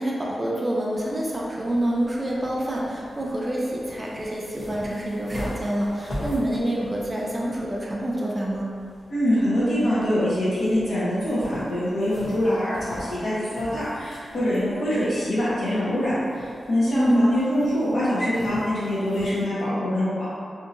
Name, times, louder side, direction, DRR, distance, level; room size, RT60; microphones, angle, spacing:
voice 1, 0.0-8.7 16.9-17.3, right 1 dB, 25° right, -4 dB, 0.4 m, -26 dB
sound 1, 0.9-19.4, equal, 45° left, 0.8 m, -41 dB
voice 2, 9.1-20.3, equal, 75° left, -10 dB, 1.0 m, -24 dB
2.8 x 2.7 x 2.5 m, 2.3 s
wide cardioid pair, 100°, 0 cm